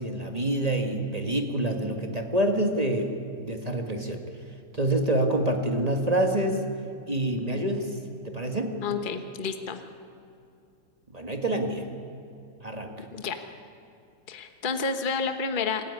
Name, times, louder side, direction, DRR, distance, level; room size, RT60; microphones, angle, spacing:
voice 1, 0.0-3.1 3.4-4.2 4.7-6.6 7.1-8.0 8.2-8.8 11.1-11.8 12.6-13.1, right 1 dB, 20° right, 3 dB, 1.8 m, -27 dB
voice 2, 8.8-9.8 13.1-13.4 14.3-15.9, left 5 dB, 30° left, 7 dB, 1.2 m, -30 dB
26.5 x 14.5 x 9.7 m, 2.7 s
omnidirectional pair, 1.9 m